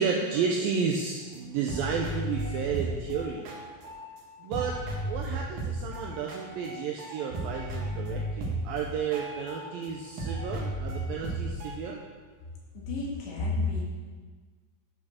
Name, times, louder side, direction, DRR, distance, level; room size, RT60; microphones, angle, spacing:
voice 1, 0.0-3.5 4.4-4.8 5.0-12.0, right 6 dB, 80° right, 0 dB, 2.1 m, -32 dB
sound 1, 1.3-1.4 1.7-4.3 4.5-9.9 10.2-11.7, right 1 dB, 55° right, 2.6 m, -35 dB
voice 2, 12.7-13.8, left 3 dB, 80° left, -3 dB, 4.2 m, -30 dB
11.0 x 6.1 x 6.5 m, 1.5 s
omnidirectional pair, 4.9 m